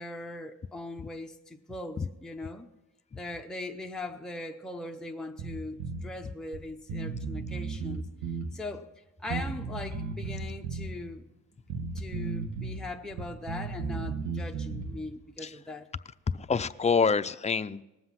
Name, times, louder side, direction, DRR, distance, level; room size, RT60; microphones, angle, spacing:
voice 1, 0.0-2.7 3.1-8.0 8.5-8.9 9.2-11.3 11.9-15.9, left 2 dB, ahead, 0.7 m, -40 dB
Bass guitar, 5.4-6.1 6.5-6.6 6.9-8.5 9.3-10.9 11.7-12.8 13.1-15.0, right 4 dB, 75° right, 1.9 m, -35 dB
voice 2, 16.3-17.8, left 5 dB, 25° left, 0.4 m, -27 dB
19.5 x 7.7 x 5.9 m
cardioid pair, 110°, 31 cm